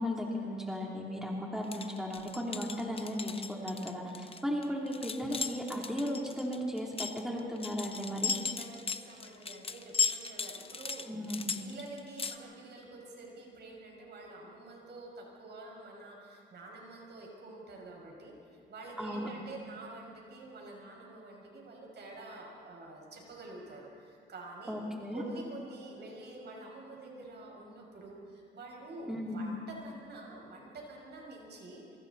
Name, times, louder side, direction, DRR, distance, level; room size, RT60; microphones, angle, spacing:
voice 1, 0.0-8.3 11.0-11.6 19.0-19.3 24.7-25.2 29.1-29.4, equal, ahead, -2 dB, 3.3 m, -36 dB
sound 1, 1.6-12.4, left 5 dB, 30° left, 1.0 m, -36 dB
voice 2, 8.5-18.4 18.7-24.8 25.1-32.0, right 2 dB, 55° right, -1 dB, 6.4 m, -48 dB
26.5 x 24.0 x 4.2 m, 2.3 s
cardioid pair, 90°, 20 cm